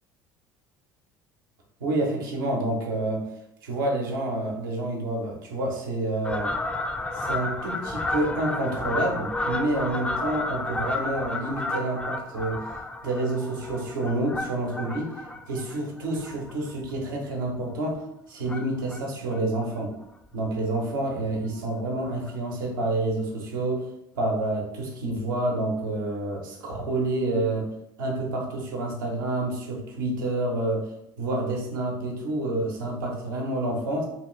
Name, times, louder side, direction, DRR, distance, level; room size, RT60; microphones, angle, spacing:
voice 1, 1.8-3.3 3.6-6.5 7.1-12.7 13.0-18.0 18.3-19.9 20.3-23.9 24.1-27.7 28.0-30.9 31.2-34.1, right 2 dB, 90° right, -1 dB, 0.8 m, -28 dB
Fowl, 6.2-17.0 17.5-17.7 18.4-19.0 19.3-19.4 19.6-19.7 20.0-20.1 20.5-20.6 21.6-21.7 22.3-22.4, left 2 dB, 10° left, 0.3 m, -32 dB
2.9 x 2.4 x 3.1 m, 0.80 s
hypercardioid pair, 75°, 11 cm